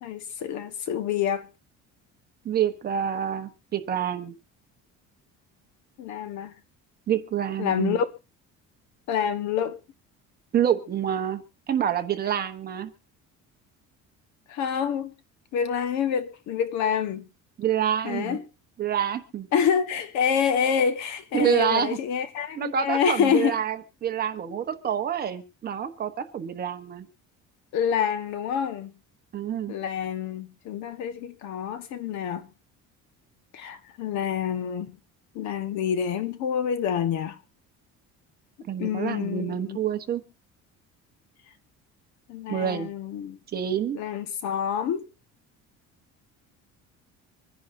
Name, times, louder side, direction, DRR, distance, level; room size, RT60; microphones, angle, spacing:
voice 1, 0.0-1.5 6.0-6.5 7.6-8.0 9.1-9.8 14.5-15.1 15.5-17.3 18.0-18.4 19.5-23.5 27.7-28.9 29.7-32.5 33.5-35.0 35.3-37.4 38.8-39.8 42.3-43.4 43.9-45.1, left 8 dB, 60° left, 1.4 m, -27 dB
voice 2, 2.4-4.3 7.1-8.0 10.5-11.4 11.7-12.9 17.6-18.4 18.8-19.5 21.3-22.0 22.6-27.1 29.3-29.8 38.7-40.2 42.5-42.9 43.5-44.0, right 9 dB, 30° right, 1.0 m, -27 dB
25.5 x 10.5 x 2.7 m
cardioid pair, 180°, 32 cm